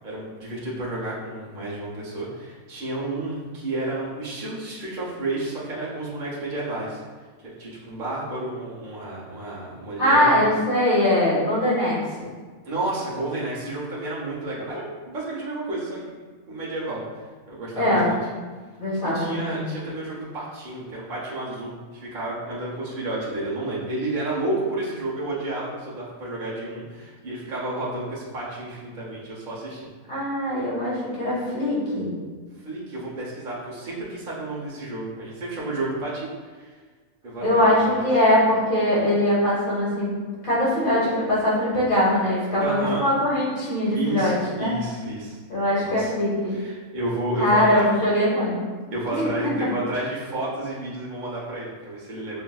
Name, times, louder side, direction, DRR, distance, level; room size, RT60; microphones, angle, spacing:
voice 1, 0.0-7.0 7.4-10.3 12.6-16.2 16.5-17.0 17.5-18.2 19.1-29.9 32.6-36.3 36.5-36.7 37.2-38.1 42.6-43.0 43.9-45.4 45.8-46.1 46.5-47.9 48.9-52.4, right 2 dB, 45° right, -7 dB, 0.9 m, -31 dB
voice 2, 10.0-12.0 17.8-18.1 18.8-19.8 30.1-32.1 37.4-40.1 40.4-44.7 45.5-46.6 47.4-48.6 49.1-49.5, left 1 dB, 85° left, -8 dB, 2.0 m, -22 dB
6.3 x 2.5 x 2.3 m, 1.4 s
omnidirectional pair, 1.5 m